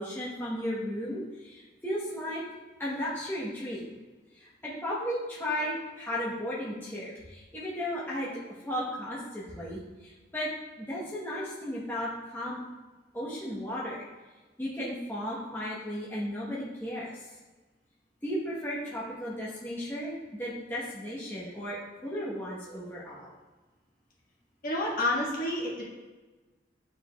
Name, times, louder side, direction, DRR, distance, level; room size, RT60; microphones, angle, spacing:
voice 1, 0.0-2.4 2.8-3.9 4.3-10.5 10.8-12.6 13.1-14.1 14.6-17.3 18.2-23.3, equal, 10° left, -7 dB, 0.9 m, -35 dB
voice 2, 24.6-25.8, left 1 dB, 50° left, -5 dB, 1.5 m, -29 dB
9.0 x 4.7 x 2.3 m, 1.2 s
head